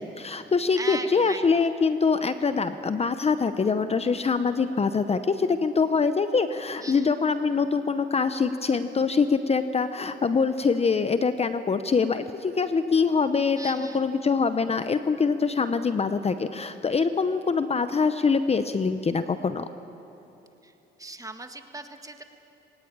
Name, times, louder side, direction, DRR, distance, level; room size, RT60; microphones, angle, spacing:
voice 1, 0.0-19.7, left 5 dB, 30° left, 11 dB, 0.8 m, -24 dB
voice 2, 0.7-1.7 6.8-7.1 13.5-14.0 20.6-20.7 21.0-22.2, right 2 dB, 15° right, 6 dB, 1.7 m, -38 dB
21.5 x 19.0 x 8.8 m, 3.0 s
cardioid pair, 90°, 20 cm